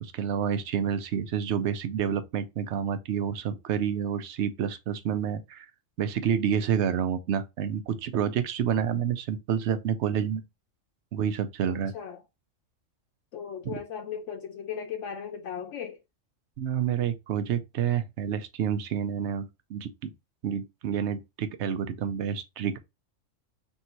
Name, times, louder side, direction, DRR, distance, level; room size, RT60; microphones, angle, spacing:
voice 1, 0.0-5.7 6.0-10.4 11.1-11.9 13.6-13.8 16.6-20.1 20.4-22.8, right 8 dB, 70° right, 0.9 m, -29 dB
voice 2, 11.7-12.2 13.3-16.0, left 7 dB, 75° left, 0.9 m, -37 dB
3.6 x 2.8 x 4.3 m
omnidirectional pair, 1.3 m